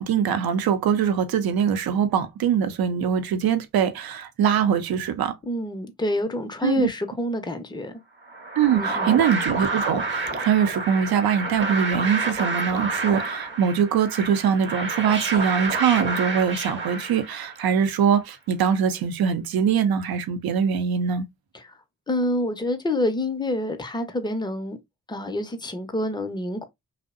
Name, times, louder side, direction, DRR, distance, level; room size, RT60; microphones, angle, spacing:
voice 1, 0.0-5.3 6.6-6.9 8.6-21.2, right 8 dB, 70° right, 0.6 m, -22 dB
voice 2, 5.5-7.9 8.7-9.1 21.5-21.6 22.1-24.8 25.1-26.6, left 1 dB, 10° left, 0.6 m, -27 dB
sound 1, 8.3-17.7, right 3 dB, 30° right, 0.7 m, -29 dB
2.6 x 2.0 x 2.4 m
supercardioid pair, 45°, 38 cm